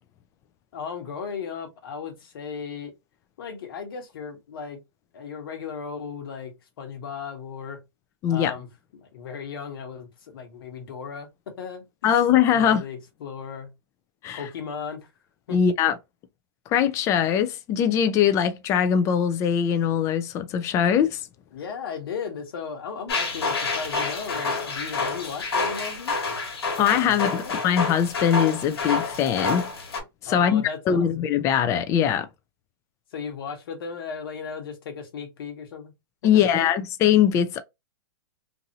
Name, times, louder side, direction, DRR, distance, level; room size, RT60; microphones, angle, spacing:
voice 1, 0.7-2.9 3.4-4.8 5.1-7.8 8.3-8.7 9.0-12.1 12.5-13.7 14.3-15.1 15.5-15.6 21.5-26.1 27.0-27.6 30.3-31.1 33.1-35.9 36.3-36.7, left 6 dB, 65° left, 1.2 m, -36 dB
voice 2, 12.0-12.8 14.2-14.4 15.5-16.0 16.7-21.3 26.8-29.7 30.2-32.3 36.2-37.6, left 9 dB, 25° left, 0.4 m, -21 dB
sound 1, 23.1-30.0, left 3 dB, 85° left, 1.4 m, -28 dB
2.7 x 2.6 x 2.8 m
hypercardioid pair, 145°, 13 cm